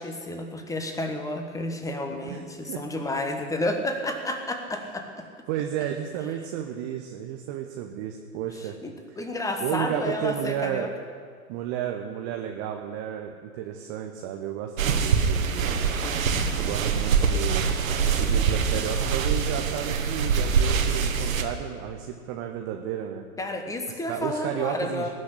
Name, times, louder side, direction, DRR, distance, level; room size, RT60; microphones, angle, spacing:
voice 1, 0.0-5.2 8.8-10.9 23.4-25.1, left 1 dB, 5° left, 5 dB, 1.2 m, -31 dB
voice 2, 2.2-2.8 4.8-4.9 5.5-8.7 9.6-10.9 11.5-15.9 16.5-17.7 18.2-23.2 23.9-25.1, right 10 dB, 15° right, 3 dB, 0.3 m, -32 dB
sound 1, 14.8-21.4, right 6 dB, 65° right, 1.5 m, -24 dB
19.0 x 6.3 x 9.8 m, 2.1 s
figure-of-eight pair, 105°, 43 cm